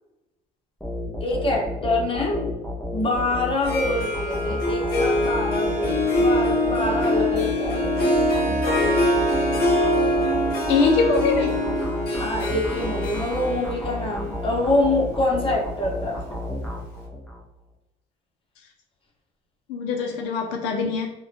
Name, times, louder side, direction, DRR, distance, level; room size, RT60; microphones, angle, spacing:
sound 1, 0.8-17.4, left 1 dB, ahead, 0.5 m, -32 dB
voice 1, 1.2-2.5 2.9-8.1 12.2-16.2, left 2 dB, 30° left, -2 dB, 0.8 m, -25 dB
Harp, 3.5-16.4, left 1 dB, 60° left, 0.8 m, -24 dB
voice 2, 10.7-11.5 19.7-21.1, left 4 dB, 90° left, 2 dB, 0.4 m, -22 dB
2.2 x 2.1 x 2.6 m, 0.94 s
supercardioid pair, 85°, 18 cm